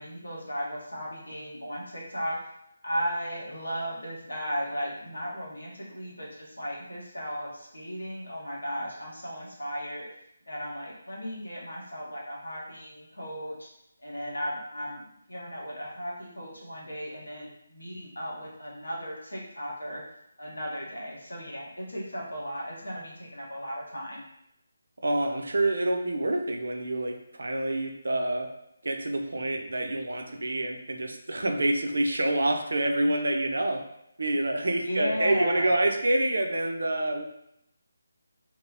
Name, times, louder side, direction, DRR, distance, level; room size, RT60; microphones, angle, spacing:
voice 1, 0.0-2.4 2.8-10.0 10.5-13.7 14.0-15.0 15.3-20.0 20.4-24.2 34.8-35.7, equal, 75° left, -4 dB, 0.9 m, -35 dB
voice 2, 25.0-28.5 28.8-33.8 34.2-37.2, right 1 dB, 65° right, 4 dB, 0.4 m, -27 dB
2.8 x 2.0 x 2.6 m, 0.78 s
figure-of-eight pair, 150°, 0 cm